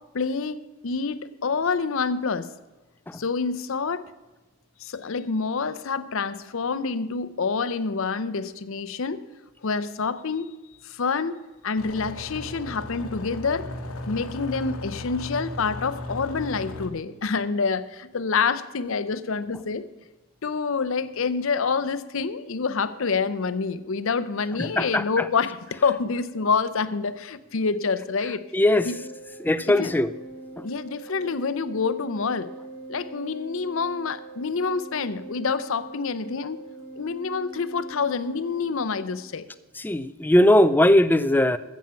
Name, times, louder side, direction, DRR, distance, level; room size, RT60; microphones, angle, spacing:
voice 1, 0.1-2.5 3.1-4.1 4.8-9.2 9.6-10.5 10.8-13.7 14.1-19.9 20.4-28.4 28.8-29.0 29.7-29.9 30.6-32.5 32.9-36.6 37.0-39.5, left 5 dB, 65° left, 0.6 m, -27 dB
sound 1, 11.8-16.9, left 1 dB, 80° left, 1.1 m, -36 dB
voice 2, 24.6-25.3 28.5-28.9 29.4-30.1 30.6-30.7 39.8-41.6, left 1 dB, 10° left, 0.3 m, -20 dB
Organ, 28.7-39.4, right 2 dB, 55° right, 3.2 m, -42 dB
15.0 x 7.3 x 5.6 m
head